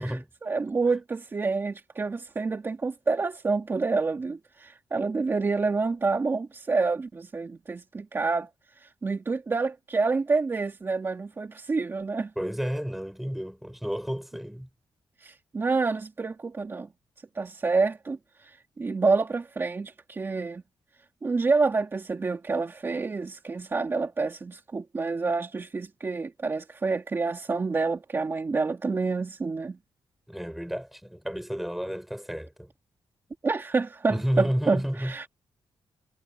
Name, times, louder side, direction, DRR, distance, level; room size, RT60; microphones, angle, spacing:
voice 1, 0.0-12.3 15.2-16.9 17.3-20.6 21.2-29.8 33.4-35.3, right 4 dB, 25° right, 2.6 m, -28 dB
voice 2, 12.4-14.7 30.3-32.7 34.1-35.1, equal, ahead, 7.0 m, -31 dB
wide cardioid pair, 175°, 9 cm